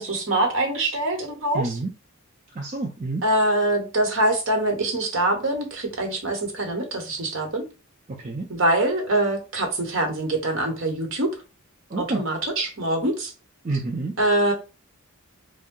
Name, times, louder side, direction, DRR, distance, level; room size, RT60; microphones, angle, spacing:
voice 1, 0.0-1.8 3.2-7.6 8.5-11.3 12.0-13.3 14.2-14.5, right 1 dB, 60° right, 0.9 m, -24 dB
voice 2, 1.5-1.9 2.6-3.2 8.2-8.5 11.9-12.2 13.6-14.1, right 2 dB, 35° right, 0.4 m, -28 dB
2.6 x 2.1 x 3.6 m
head